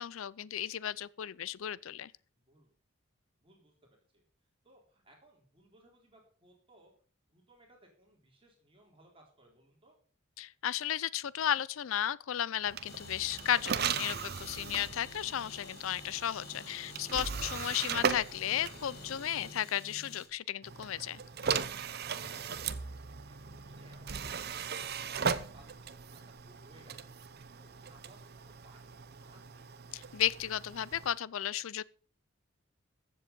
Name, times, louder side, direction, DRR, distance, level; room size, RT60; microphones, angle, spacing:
voice 1, 0.0-2.1 10.4-21.2 29.9-31.8, left 10 dB, 70° left, 0.4 m, -34 dB
voice 2, 2.4-2.7 3.4-4.2 4.6-6.9 7.3-10.0 17.4-17.8 23.3-27.1 27.5-29.7, right 1 dB, 25° right, 3.6 m, -62 dB
sound 1, 12.6-19.6 20.6-31.2, right 6 dB, 45° right, 0.7 m, -38 dB
sound 2, 12.8-20.3, left 4 dB, 50° left, 1.9 m, -50 dB
14.5 x 7.8 x 5.3 m
head